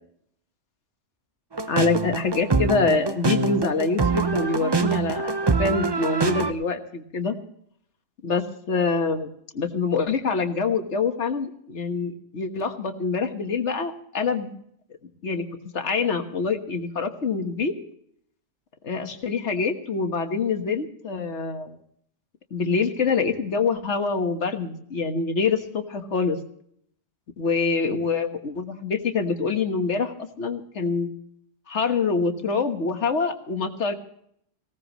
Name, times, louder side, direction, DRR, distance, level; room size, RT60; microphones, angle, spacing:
sound 1, 1.5-6.5, right 4 dB, 25° right, 0.7 m, -25 dB
voice 1, 1.7-5.3 5.6-7.4 8.2-9.3 9.5-14.5 15.2-15.5 15.7-17.7 18.8-21.8 22.5-26.4 27.4-31.1 31.7-33.9, left 4 dB, 65° left, 6 dB, 1.7 m, -25 dB
19.5 x 17.0 x 3.0 m, 0.68 s
omnidirectional pair, 1.3 m